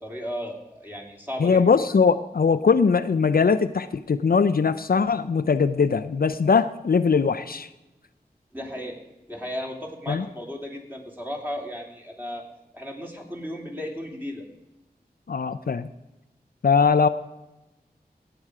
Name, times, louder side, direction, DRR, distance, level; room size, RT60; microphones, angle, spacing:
voice 1, 0.0-1.6 8.5-9.0 9.3-12.4 12.7-14.4, equal, 10° right, 0 dB, 3.0 m, -35 dB
voice 2, 1.4-7.7 10.1-10.2 15.3-15.9 16.6-17.1, left 5 dB, 65° left, 11 dB, 0.5 m, -21 dB
17.5 x 7.9 x 4.8 m, 0.97 s
wide cardioid pair, 60°, 16 cm